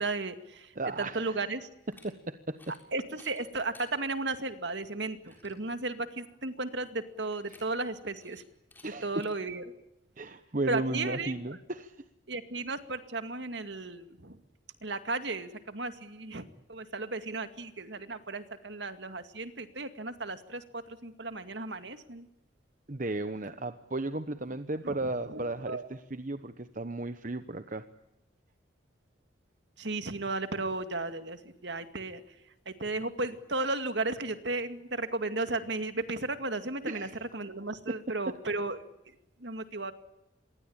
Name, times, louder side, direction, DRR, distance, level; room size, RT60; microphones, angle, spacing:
voice 1, 0.0-1.7 2.9-8.4 9.0-9.6 10.7-11.6 12.3-14.4 14.8-22.3 24.8-25.9 29.8-32.4 32.7-39.1 39.4-39.9, right 3 dB, 60° right, 9 dB, 2.2 m, -35 dB
voice 2, 0.8-1.3 2.0-2.6 8.8-9.2 10.2-11.9 22.9-27.8 36.9-37.1, right 2 dB, 40° right, 10 dB, 1.1 m, -34 dB
sound 1, 1.8-2.1 2.5-2.8 3.1-3.9 4.5-4.6 4.9-5.0 5.3-5.6 7.3-7.9 8.2-8.4 8.7-8.9 9.2-9.3, left 2 dB, 10° left, 7.0 m, -56 dB
26.5 x 22.5 x 8.8 m, 0.88 s
head